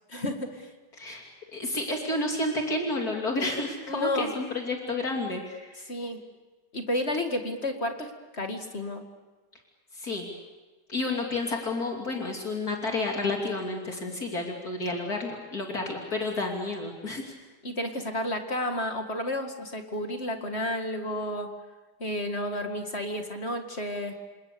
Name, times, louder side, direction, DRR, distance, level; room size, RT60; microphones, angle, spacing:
voice 1, 0.1-0.7 3.9-4.3 5.9-6.2 6.7-9.0 17.6-21.5 22.0-24.2, left 1 dB, 40° left, 5 dB, 2.3 m, -31 dB
voice 2, 0.9-5.9 9.9-10.3 10.9-17.3, left 2 dB, 60° left, 1 dB, 3.4 m, -31 dB
28.0 x 27.0 x 7.0 m, 1.3 s
omnidirectional pair, 1.8 m